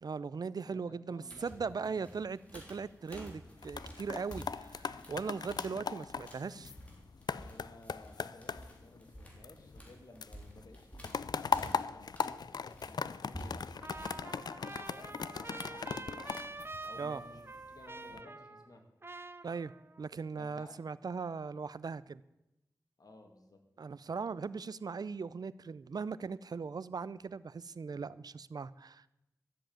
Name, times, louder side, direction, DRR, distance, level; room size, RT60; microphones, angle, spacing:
voice 1, 0.0-6.7 17.0-17.2 19.4-19.7 20.0-22.2 23.8-29.0, right 5 dB, 75° right, 18 dB, 0.5 m, -39 dB
voice 2, 0.6-2.1 7.4-16.5 16.8-17.4 17.7-18.9 20.3-20.8 23.0-23.6, left 2 dB, 70° left, 3 dB, 2.4 m, -56 dB
sound 1, 1.2-14.1, equal, 20° left, 3.5 m, -51 dB
sound 2, 3.4-9.9 10.2-17.4 17.9-18.2, left 5 dB, 90° left, 0.4 m, -39 dB
Trumpet, 13.8-18.8 19.0-20.0, right 3 dB, 35° right, 0.8 m, -46 dB
13.0 x 7.7 x 8.8 m, 0.91 s
wide cardioid pair, 55°, 7 cm